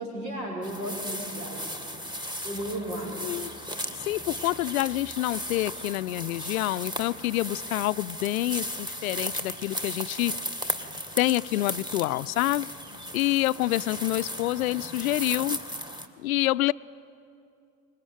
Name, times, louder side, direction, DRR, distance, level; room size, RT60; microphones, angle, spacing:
voice 1, 0.0-1.6 2.4-3.2, right 1 dB, 70° right, 0 dB, 6.3 m, -34 dB
sound 1, 0.6-16.1, equal, 10° right, 1.7 m, -36 dB
voice 2, 4.0-10.3 11.2-12.7 13.1-15.6 16.2-16.7, left 17 dB, 60° left, 16 dB, 0.6 m, -27 dB
25.0 x 21.0 x 9.2 m, 2.4 s
figure-of-eight pair, 75°, 49 cm